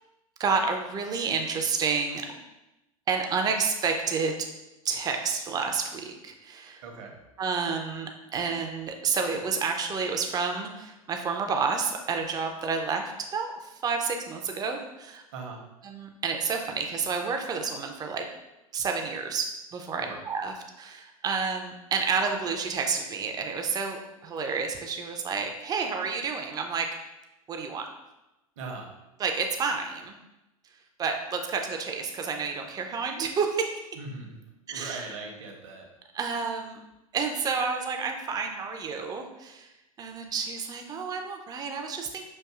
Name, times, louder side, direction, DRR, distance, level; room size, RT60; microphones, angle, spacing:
voice 1, 0.4-2.2 3.1-4.5 4.8-6.8 7.4-15.2 15.8-18.3 18.7-26.9 27.5-27.9 29.2-30.2 31.0-33.9 34.7-35.0 36.1-36.8 37.1-42.2, right 5 dB, 20° right, 4 dB, 0.5 m, -30 dB
voice 2, 6.8-7.2 15.3-15.7 20.0-20.2 28.6-28.9 33.9-34.4 34.7-35.9, right 3 dB, 55° right, 1 dB, 0.9 m, -40 dB
6.3 x 2.6 x 2.3 m, 0.97 s
figure-of-eight pair, 90°, 19 cm